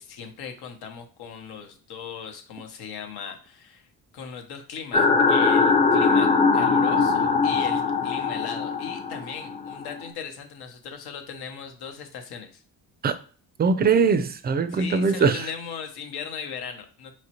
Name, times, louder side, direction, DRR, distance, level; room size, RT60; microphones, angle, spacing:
voice 1, 0.0-3.9 4.1-12.6 14.7-17.1, left 7 dB, 75° left, 1.0 m, -38 dB
sound 1, 4.9-10.1, left 4 dB, 20° left, 0.6 m, -21 dB
voice 2, 13.6-15.5, right 5 dB, 25° right, 0.4 m, -21 dB
5.0 x 3.0 x 2.9 m
cardioid pair, 105°, 40 cm